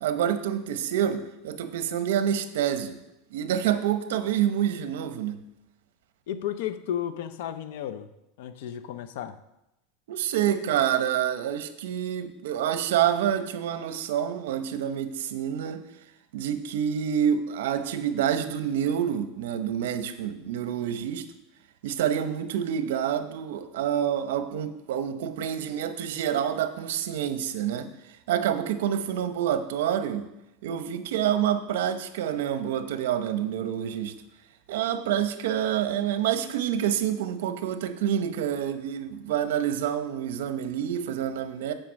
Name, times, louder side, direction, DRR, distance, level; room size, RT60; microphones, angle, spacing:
voice 1, 0.0-3.0 3.3-5.4 10.1-15.8 16.3-21.3 21.8-27.9 28.3-30.3 30.6-34.1 34.7-41.7, right 9 dB, 80° right, 0.8 m, -27 dB
voice 2, 6.3-8.1 8.4-9.4, left 10 dB, 70° left, 0.6 m, -33 dB
8.9 x 5.1 x 6.3 m
supercardioid pair, 160°, 0 cm